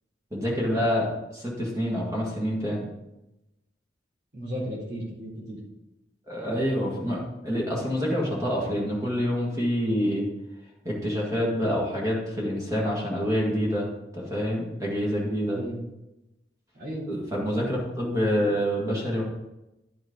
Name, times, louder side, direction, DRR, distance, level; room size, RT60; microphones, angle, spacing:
voice 1, 0.3-2.9 6.3-10.3 10.8-13.9 14.1-15.6 17.1-19.2, equal, 20° right, -4 dB, 1.8 m, -27 dB
voice 2, 4.3-5.6 15.5-15.8 16.7-17.1 17.5-17.7, equal, 70° right, -4 dB, 3.6 m, -35 dB
10.5 x 6.1 x 3.9 m, 0.94 s
head